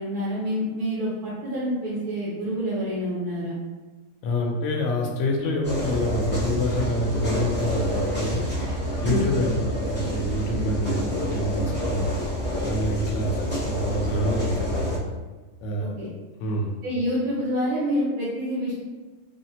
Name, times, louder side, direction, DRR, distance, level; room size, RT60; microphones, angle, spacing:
voice 1, 0.0-3.6 9.0-9.3 15.8-16.1 16.8-18.8, equal, 85° right, -8 dB, 1.3 m, -27 dB
voice 2, 4.2-8.5 9.0-12.2 12.6-15.0 15.6-15.9 16.4-16.8, left 1 dB, 65° left, 0 dB, 0.8 m, -26 dB
sound 1, 5.6-15.0, equal, 15° left, 0.4 m, -28 dB
3.4 x 2.1 x 2.7 m, 1.2 s
omnidirectional pair, 1.6 m